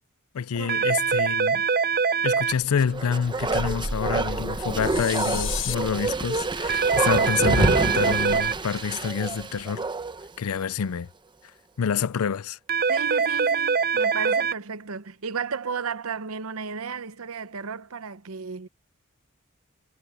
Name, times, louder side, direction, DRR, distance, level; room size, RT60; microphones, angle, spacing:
voice 1, 0.3-1.6 2.2-9.8 10.4-11.1 11.8-12.6, left 7 dB, 80° left, 0.5 m, -27 dB
sound 1, 0.7-2.5 6.7-8.5 12.7-14.5, right 5 dB, 45° right, 0.5 m, -23 dB
Bark, 2.7-10.3 10.6-10.7, right 2 dB, 20° right, 0.8 m, -27 dB
sound 2, 4.8-5.8, left 13 dB, 60° left, 1.3 m, -32 dB
voice 2, 12.9-18.7, right 5 dB, 70° right, 0.8 m, -34 dB
head